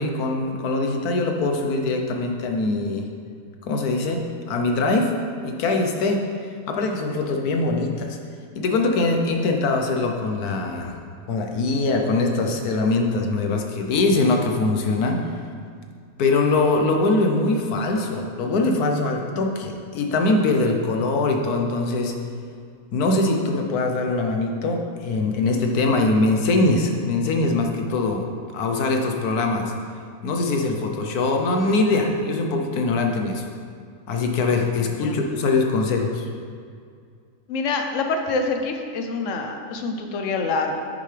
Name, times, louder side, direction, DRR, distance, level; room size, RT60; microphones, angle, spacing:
voice 1, 0.0-3.1 3.6-5.1 5.4-6.3 6.7-8.2 8.5-10.9 11.3-15.2 16.2-22.2 22.9-28.3 28.5-29.7 30.2-33.5 34.1-36.3, left 3 dB, 85° left, 3 dB, 1.4 m, -22 dB
voice 2, 34.9-35.2 37.5-40.8, left 3 dB, 60° left, 4 dB, 1.0 m, -26 dB
9.3 x 6.6 x 3.3 m, 2.2 s
omnidirectional pair, 1.6 m